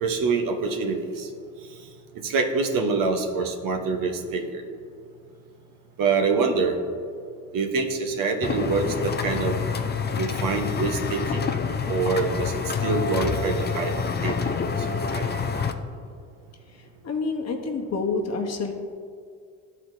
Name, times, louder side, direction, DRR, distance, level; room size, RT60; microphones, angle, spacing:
voice 1, 0.0-1.3 2.2-4.6 6.0-6.7 7.5-9.6 10.2-11.4 11.9-14.8 15.1-15.3, right 4 dB, 60° right, 4 dB, 1.0 m, -26 dB
sound 1, 8.4-15.7, left 6 dB, 25° left, 0.6 m, -27 dB
voice 2, 17.0-18.7, left 4 dB, 45° left, 3 dB, 1.0 m, -27 dB
12.0 x 4.3 x 2.6 m, 2.2 s
supercardioid pair, 70°, 37 cm